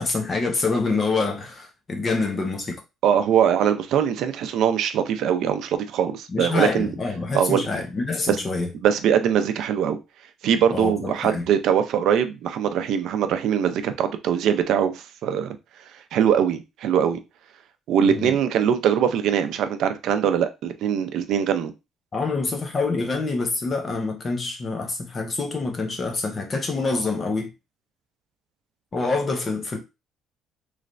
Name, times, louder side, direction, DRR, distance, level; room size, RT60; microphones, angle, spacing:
voice 1, 0.0-2.8 6.3-8.7 10.7-11.4 18.1-18.4 22.1-27.5 28.9-29.8, left 3 dB, 25° left, 0.6 m, -26 dB
voice 2, 3.0-6.9 7.3-7.6 8.3-8.4 8.8-10.0 10.4-15.6 16.1-17.2 17.9-21.7, right 8 dB, 65° right, 0.5 m, -22 dB
3.1 x 3.1 x 2.5 m
cardioid pair, 165°, 0 cm